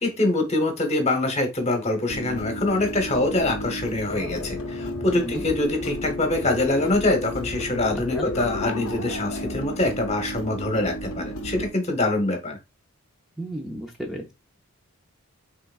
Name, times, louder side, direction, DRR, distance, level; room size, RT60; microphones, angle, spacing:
voice 1, 0.0-12.6, left 2 dB, 30° left, 1.1 m, -24 dB
sound 1, 2.1-11.7, left 1 dB, 65° left, 0.7 m, -32 dB
voice 2, 5.1-5.4 8.1-8.3 13.4-14.3, equal, ahead, 0.6 m, -33 dB
5.7 x 3.6 x 2.5 m
head